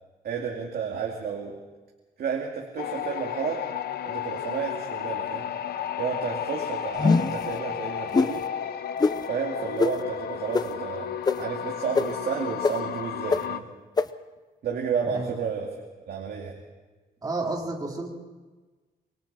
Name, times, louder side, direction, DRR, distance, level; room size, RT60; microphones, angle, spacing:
voice 1, 0.2-1.6 2.2-3.7 4.0-5.5 6.0-8.4 9.3-13.7 14.6-15.8 16.1-16.6, right 6 dB, 70° right, -1 dB, 2.5 m, -31 dB
sound 1, 2.8-13.6, left 9 dB, 70° left, 0.9 m, -33 dB
sound 2, 7.0-7.4 8.1-8.3 9.0-9.1 9.8-9.9 10.5-10.6 11.3-11.4 12.0-12.1 12.6-12.7 13.3-13.4 14.0-14.1, left 4 dB, 25° left, 0.7 m, -21 dB
voice 2, 17.2-18.1, right 2 dB, 25° right, -1 dB, 3.6 m, -30 dB
25.5 x 23.5 x 4.3 m, 1.3 s
wide cardioid pair, 155°, 17 cm